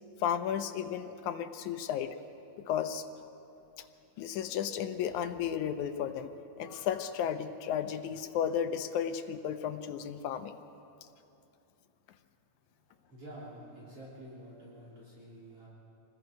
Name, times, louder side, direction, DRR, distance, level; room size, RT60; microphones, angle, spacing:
voice 1, 0.2-2.2 2.7-3.1 3.8-3.9 4.2-6.3 6.6-10.6, left 9 dB, 80° left, 9 dB, 2.2 m, -33 dB
voice 2, 13.0-15.7, right 1 dB, 50° right, -7 dB, 4.4 m, -48 dB
27.0 x 20.0 x 5.3 m, 2.9 s
omnidirectional pair, 3.4 m